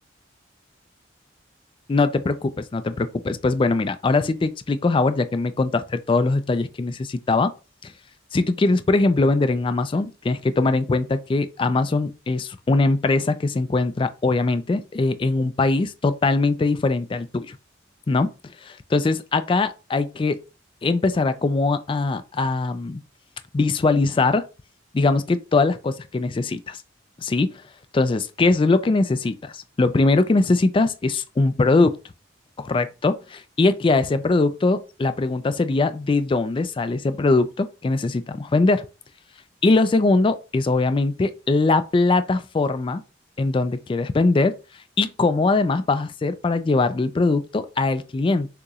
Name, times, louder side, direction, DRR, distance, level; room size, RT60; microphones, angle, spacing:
voice 1, 1.9-7.5 7.8-7.9 8.3-17.6 18.1-18.3 18.6-20.4 20.8-23.0 23.5-24.4 24.9-26.8 27.2-27.5 27.9-31.9 32.6-38.9 39.6-43.0 43.4-44.6 45.0-48.5, left 3 dB, 25° left, 0.3 m, -21 dB
6.5 x 2.9 x 2.4 m
head